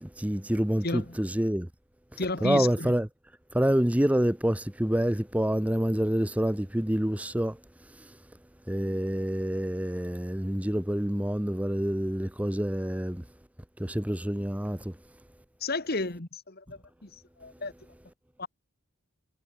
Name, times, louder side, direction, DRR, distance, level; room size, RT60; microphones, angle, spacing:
voice 1, 0.0-1.7 2.1-3.1 3.5-7.6 8.0-8.1 8.7-13.2 13.8-14.9, equal, 5° right, 0.7 m, -27 dB
voice 2, 0.8-1.2 2.2-2.9 15.6-17.1 17.4-17.7 18.4-18.5, left 3 dB, 45° left, 1.8 m, -32 dB
head